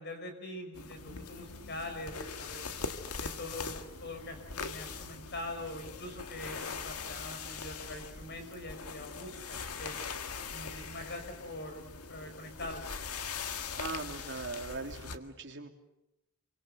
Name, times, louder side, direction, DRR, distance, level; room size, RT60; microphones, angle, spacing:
voice 1, 0.0-2.7 3.2-10.0 10.5-12.8, left 1 dB, 50° left, 7 dB, 5.8 m, -43 dB
sound 1, 0.7-15.2, left 5 dB, 90° left, 1.8 m, -41 dB
voice 2, 13.8-15.7, right 3 dB, 55° right, 3 dB, 3.0 m, -40 dB
28.0 x 24.5 x 8.0 m, 0.89 s
head